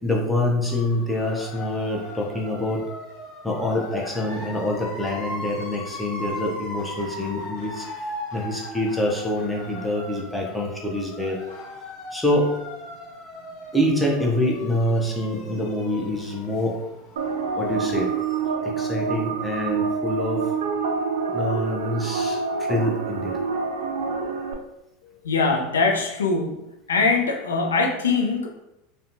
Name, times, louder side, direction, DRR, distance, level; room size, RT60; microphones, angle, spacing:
voice 1, 0.0-2.8 3.4-7.9 8.3-11.4 12.1-12.5 13.7-16.8 17.6-18.1 18.6-20.4 21.3-23.3, left 1 dB, 5° left, -2 dB, 0.6 m, -25 dB
sound 1, 0.6-18.0, left 1 dB, 55° left, 0.7 m, -38 dB
sound 2, 17.2-24.5, right 5 dB, 80° right, 0.3 m, -27 dB
voice 2, 25.2-26.6 26.9-28.5, left 4 dB, 90° left, 2 dB, 0.4 m, -22 dB
2.7 x 2.2 x 2.5 m, 0.89 s
hypercardioid pair, 90°, 0 cm